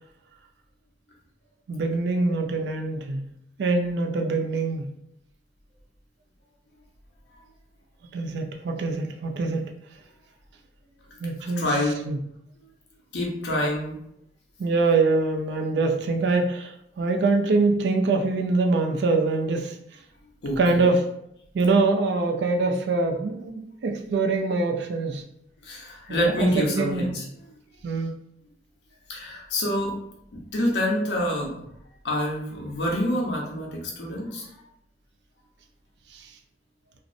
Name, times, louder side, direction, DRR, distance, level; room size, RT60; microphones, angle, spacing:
voice 1, 1.7-3.2 3.6-4.9 8.1-9.7 11.2-11.7 12.1-12.2 14.6-19.8 20.6-21.1 21.5-25.2 26.1-27.1 27.8-28.2 36.1-36.3, right 3 dB, 65° right, 4 dB, 0.3 m, -24 dB
voice 2, 11.4-12.0 12.6-12.7 13.1-14.0 20.4-20.9 25.6-27.2 29.1-29.9 30.3-31.6 32.0-34.5, left 1 dB, 70° left, -2 dB, 0.7 m, -27 dB
2.6 x 2.0 x 2.5 m, 0.76 s
head